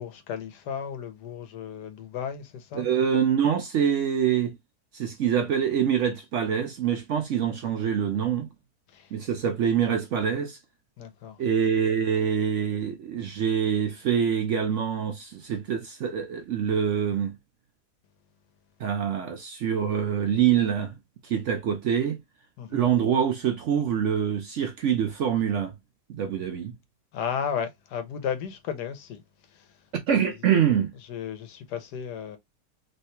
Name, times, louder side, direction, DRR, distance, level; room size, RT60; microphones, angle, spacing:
voice 1, 0.0-2.9 8.9-9.1 11.0-11.4 22.6-22.8 27.1-29.2 29.5-29.7 31.1-32.4, left 7 dB, 85° left, 1.4 m, -34 dB
voice 2, 2.7-4.6 4.9-8.5 9.1-10.6 11.4-17.4 18.8-20.9 21.2-22.2 22.7-25.7 26.1-26.7 29.9-30.9, right 8 dB, 70° right, 0.7 m, -25 dB
3.2 x 3.2 x 2.8 m
omnidirectional pair, 1.7 m